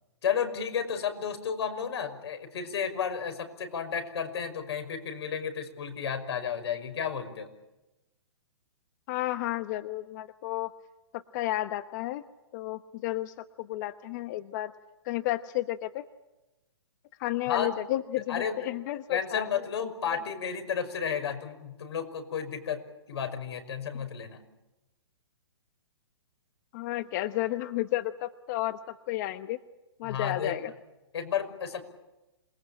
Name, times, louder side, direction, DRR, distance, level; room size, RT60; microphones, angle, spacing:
voice 1, 0.2-7.5 17.5-17.7 18.3-18.6 19.1-22.8 23.1-24.4 30.0-30.5 31.1-31.8, left 7 dB, 70° left, 6 dB, 5.9 m, -32 dB
voice 2, 9.1-10.7 11.1-12.2 12.5-14.7 15.0-16.0 17.2-19.5 19.8-20.2 26.7-28.8 29.1-29.6 30.0-30.7, left 15 dB, 40° left, 11 dB, 1.0 m, -32 dB
27.5 x 20.0 x 8.8 m, 0.99 s
hypercardioid pair, 140°, 14 cm